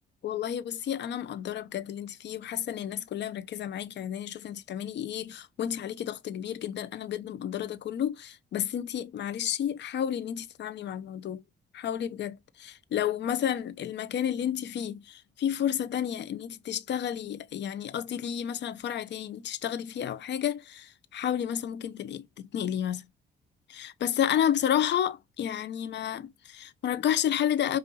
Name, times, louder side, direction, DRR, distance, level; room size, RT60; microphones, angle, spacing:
voice 1, 0.2-11.4 11.7-23.0 23.7-27.8, left 10 dB, 60° left, 0.7 m, -31 dB
5.3 x 2.6 x 2.8 m
cardioid pair, 90°, 20 cm